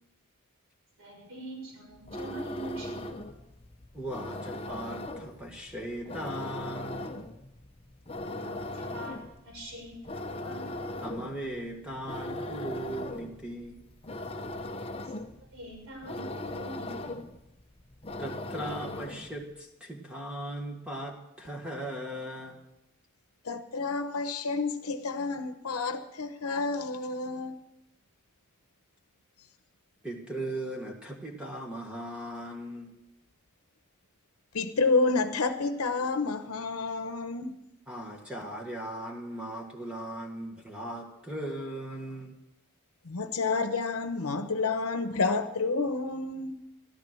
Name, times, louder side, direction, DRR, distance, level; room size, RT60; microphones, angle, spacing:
voice 1, 1.0-3.2 8.2-10.7 15.5-17.2, right 1 dB, 65° right, 6.3 m, -44 dB
sound 1, 1.9-19.4, left 1 dB, 25° left, 0.8 m, -39 dB
voice 2, 3.9-7.0 11.0-13.8 18.2-22.6 30.0-32.9 37.9-42.3, right 1 dB, 5° right, 1.6 m, -38 dB
voice 3, 23.4-27.6 34.5-37.6 43.0-46.6, left 3 dB, 85° left, 0.9 m, -29 dB
13.5 x 12.0 x 6.2 m
head